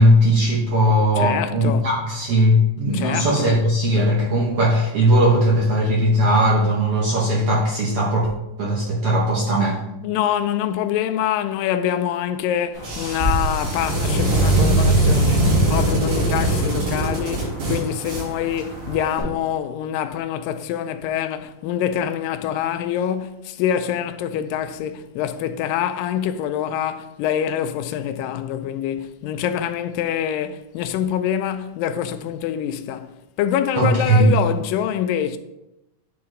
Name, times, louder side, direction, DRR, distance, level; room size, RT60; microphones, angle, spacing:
voice 1, 0.0-8.3 8.6-9.8 33.8-34.3, equal, 70° right, 1.4 m, -18 dB
voice 2, 1.2-1.9 2.9-3.6 10.0-33.1 33.4-35.4, left 10 dB, 90° left, 2.2 m, -25 dB
sound 1, 12.7-19.2, right 1 dB, 85° right, 4.5 m, -21 dB
9.5 x 4.4 x 3.7 m
omnidirectional pair, 3.9 m